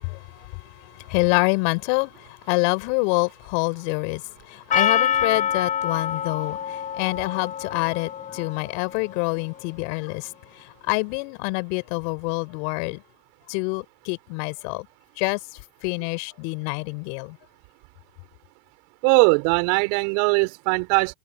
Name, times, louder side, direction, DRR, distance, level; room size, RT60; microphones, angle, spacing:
voice 1, 0.0-13.0 13.5-14.9 15.2-15.4 15.8-17.4, left 36 dB, 55° left, 4.4 m, -27 dB
Percussion, 4.7-9.3, left 9 dB, 20° left, 0.6 m, -26 dB
voice 2, 19.0-21.1, right 37 dB, 55° right, 4.4 m, -20 dB
hypercardioid pair, 95°, 41 cm